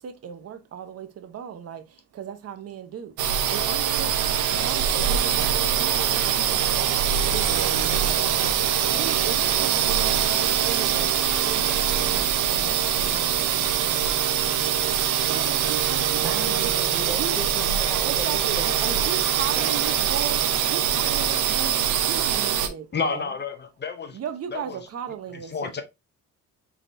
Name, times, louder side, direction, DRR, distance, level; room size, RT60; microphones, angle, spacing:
voice 1, 0.0-3.1 3.5-4.1 4.5-11.1 11.4-14.7 15.2-16.7 17.2-17.3 18.0-23.3 24.1-25.8, right 8 dB, 55° right, 0.8 m, -37 dB
sound 1, 3.2-22.7, right 9 dB, 85° right, 0.7 m, -23 dB
voice 2, 16.2-19.2 19.5-20.0, right 1 dB, 5° right, 1.4 m, -37 dB
voice 3, 22.9-24.2 24.5-24.9 25.3-25.8, left 5 dB, 35° left, 0.7 m, -30 dB
3.8 x 3.5 x 2.6 m
cardioid pair, 90°, 30 cm